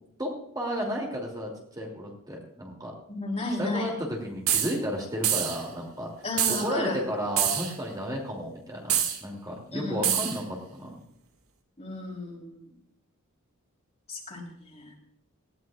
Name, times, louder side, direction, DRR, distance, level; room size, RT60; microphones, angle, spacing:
voice 1, 0.5-1.5 1.8-2.9 3.6-6.1 6.5-8.9 9.2-10.4 10.7-11.0, equal, 20° right, -1 dB, 2.7 m, -32 dB
voice 2, 3.1-3.9 6.2-7.0 9.7-10.3 11.8-12.6 14.1-14.9, left 2 dB, 30° left, -1 dB, 3.6 m, -33 dB
sound 1, 4.5-4.7 5.2-5.6 6.4-6.7 7.4-7.7 8.9-9.2 10.0-10.4, right 10 dB, 75° right, 2.0 m, -25 dB
19.0 x 15.0 x 2.4 m, 0.74 s
head